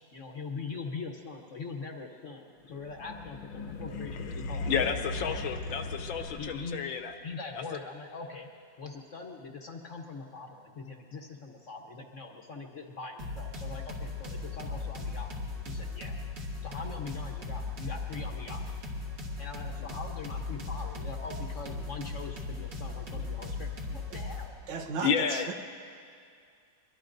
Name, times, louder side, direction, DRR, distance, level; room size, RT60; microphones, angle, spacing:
voice 1, 0.1-5.4 6.4-6.8 7.2-8.5 8.8-15.4 15.6-16.2 16.6-18.7 19.4-24.5, left 4 dB, 50° left, 2 dB, 1.1 m, -42 dB
sound 1, 2.7-7.0, left 3 dB, 90° left, 1.8 m, -38 dB
voice 2, 4.7-7.1 25.0-25.5, left 7 dB, 75° left, 5 dB, 1.6 m, -30 dB
sound 2, 13.2-24.5, left 3 dB, 60° right, 2.6 m, -37 dB
voice 3, 24.7-25.5, right 5 dB, 75° right, 5 dB, 1.9 m, -35 dB
23.5 x 22.5 x 2.6 m, 2.3 s
omnidirectional pair, 2.2 m